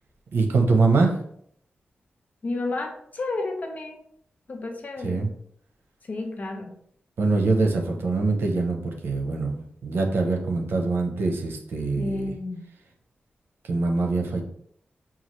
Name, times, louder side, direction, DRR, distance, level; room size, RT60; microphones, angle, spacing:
voice 1, 0.3-1.2 5.0-5.3 7.2-12.3 13.6-14.4, right 3 dB, 85° right, 2 dB, 0.7 m, -23 dB
voice 2, 2.4-4.0 4.5-5.2 6.1-6.7 12.0-12.6, left 2 dB, 45° left, 2 dB, 0.7 m, -31 dB
5.6 x 2.4 x 3.1 m, 0.68 s
wide cardioid pair, 125°, 4 cm